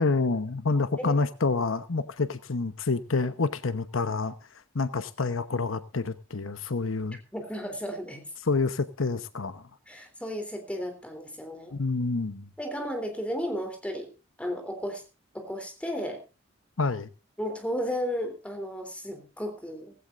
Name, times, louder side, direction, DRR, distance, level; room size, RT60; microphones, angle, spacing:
voice 1, 0.0-4.3 4.7-7.2 8.5-9.6 11.7-12.5 16.8-17.1, left 3 dB, 90° left, 1.0 m, -28 dB
voice 2, 7.3-8.2 9.9-11.7 12.6-14.1 14.4-15.0 15.3-16.2 17.4-19.9, equal, 5° left, 3.3 m, -34 dB
18.0 x 16.0 x 2.5 m
head